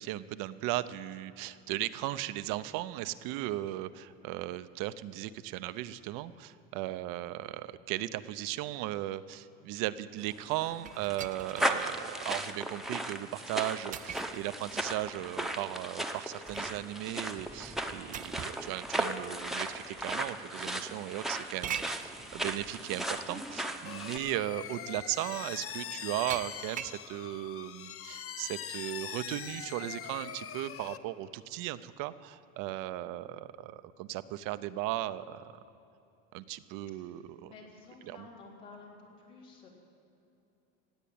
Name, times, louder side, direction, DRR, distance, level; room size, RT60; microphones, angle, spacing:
voice 1, 0.0-35.5 36.3-37.5 38.1-38.2, right 15 dB, 65° right, 14 dB, 0.7 m, -37 dB
sound 1, 10.3-24.2, right 1 dB, ahead, 0.9 m, -36 dB
sound 2, 10.9-11.8 12.3-12.4 13.9-14.5 16.1-16.8 18.1-18.7 19.7-19.8 21.6-22.1 23.5-23.6 24.0-24.3 26.3-27.0, right 9 dB, 25° right, 0.3 m, -41 dB
sound 3, 23.9-31.0, left 9 dB, 40° left, 0.7 m, -42 dB
voice 2, 36.9-39.7, left 3 dB, 85° left, -3 dB, 3.8 m, -53 dB
17.5 x 8.2 x 8.7 m, 2.8 s
supercardioid pair, 100°, 35 cm